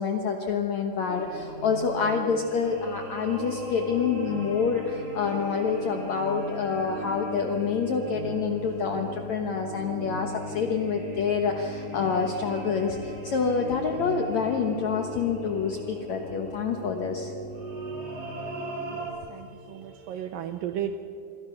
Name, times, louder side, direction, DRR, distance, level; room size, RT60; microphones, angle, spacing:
voice 1, 0.0-17.3, left 5 dB, 70° left, 3 dB, 1.7 m, -27 dB
sound 1, 1.1-19.1, equal, 35° right, 4.3 m, -38 dB
voice 2, 18.9-21.0, right 9 dB, 80° right, 8 dB, 2.1 m, -35 dB
27.5 x 22.5 x 5.9 m, 2.7 s
omnidirectional pair, 4.9 m